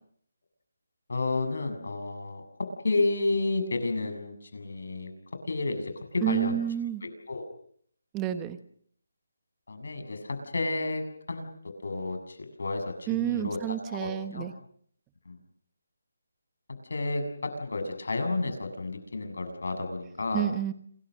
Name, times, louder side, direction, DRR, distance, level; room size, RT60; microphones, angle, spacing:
voice 1, 1.1-5.1 5.5-6.6 7.0-7.5 9.7-11.5 11.8-14.5 15.3-15.4 16.9-20.5, left 3 dB, 70° left, 8 dB, 7.2 m, -31 dB
voice 2, 6.2-7.0 8.1-8.6 13.1-14.5 20.3-20.7, right 12 dB, 10° right, 11 dB, 1.2 m, -29 dB
27.5 x 24.0 x 6.6 m, 0.63 s
hypercardioid pair, 175°, 0 cm